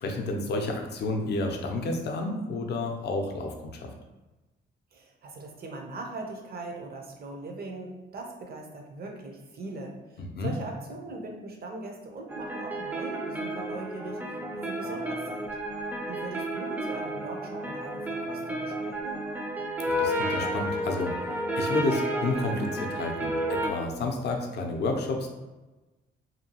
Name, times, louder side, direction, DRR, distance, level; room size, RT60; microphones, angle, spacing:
voice 1, 0.0-3.9 10.2-10.5 19.8-21.1 21.6-25.3, left 2 dB, 60° left, 2 dB, 0.5 m, -30 dB
voice 2, 4.9-15.5 16.1-19.2, right 2 dB, 50° right, 2 dB, 0.6 m, -40 dB
sound 1, 12.3-23.7, right 1 dB, 10° right, 0.4 m, -31 dB
2.8 x 2.3 x 2.8 m, 1.1 s
cardioid pair, 90°, 20 cm